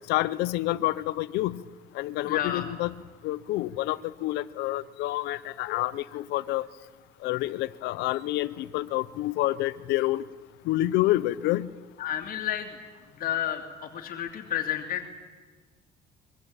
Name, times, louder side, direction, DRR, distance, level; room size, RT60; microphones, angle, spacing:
voice 1, 0.1-1.6 1.9-2.9 3.2-6.7 7.2-10.2 10.7-11.7, left 16 dB, 90° left, 15 dB, 0.8 m, -28 dB
voice 2, 2.2-2.7 12.0-12.8 13.1-15.1, left 10 dB, 60° left, 4 dB, 2.7 m, -31 dB
25.0 x 23.0 x 8.9 m, 1.4 s
cardioid pair, 110°, 17 cm